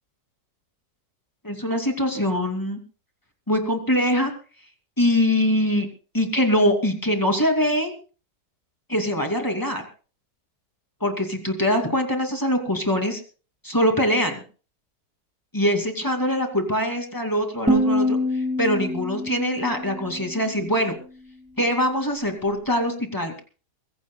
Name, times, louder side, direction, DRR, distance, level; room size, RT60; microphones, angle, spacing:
voice 1, 1.4-2.8 3.5-4.3 5.0-5.9 6.1-7.9 8.9-9.8 11.0-13.2 13.6-14.4 15.5-20.9 21.6-23.4, equal, 10° left, 4 dB, 2.5 m, -23 dB
sound 1, 17.7-20.7, left 1 dB, 5° right, 2.6 m, -25 dB
23.0 x 15.5 x 2.3 m, 0.37 s
omnidirectional pair, 1.9 m